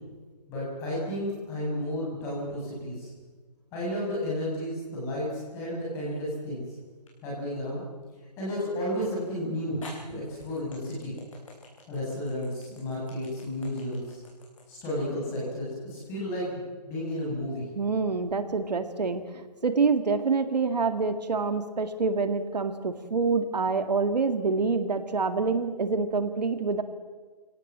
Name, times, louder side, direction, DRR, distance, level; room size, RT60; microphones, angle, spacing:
voice 1, 0.5-3.1 3.7-6.6 7.2-7.8 8.4-9.8 10.1-11.1 11.9-14.2 14.7-17.6, left 1 dB, 10° left, -5 dB, 7.2 m, -32 dB
sound 1, 5.7-6.3 7.1-7.2 9.1-9.2 9.8-16.0, left 3 dB, 50° left, 7.4 m, -49 dB
voice 2, 17.8-26.8, right 4 dB, 75° right, 8 dB, 2.1 m, -26 dB
25.5 x 18.0 x 7.5 m, 1.4 s
hypercardioid pair, 175°, 21 cm